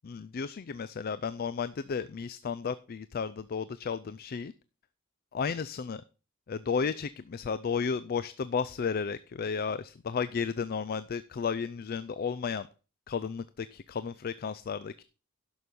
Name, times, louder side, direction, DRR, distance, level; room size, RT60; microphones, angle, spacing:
voice 1, 0.0-4.5 5.3-6.0 6.5-12.7 13.1-15.0, left 6 dB, 45° left, 15 dB, 0.4 m, -33 dB
11.0 x 6.3 x 5.2 m, 0.34 s
head